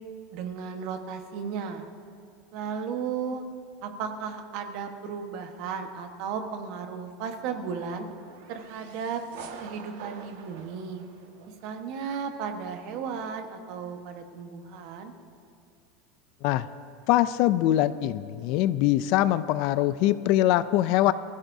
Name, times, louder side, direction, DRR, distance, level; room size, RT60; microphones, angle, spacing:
voice 1, 0.3-1.9 2.5-3.4 3.8-8.1 8.5-9.2 9.6-11.0 11.6-15.1, right 6 dB, 45° right, 5 dB, 1.2 m, -34 dB
sound 1, 7.7-11.8, right 6 dB, 75° right, 1.6 m, -46 dB
voice 2, 17.1-21.1, left 14 dB, 45° left, 15 dB, 0.4 m, -23 dB
24.5 x 15.5 x 2.7 m, 2.4 s
supercardioid pair, 180°, 0 cm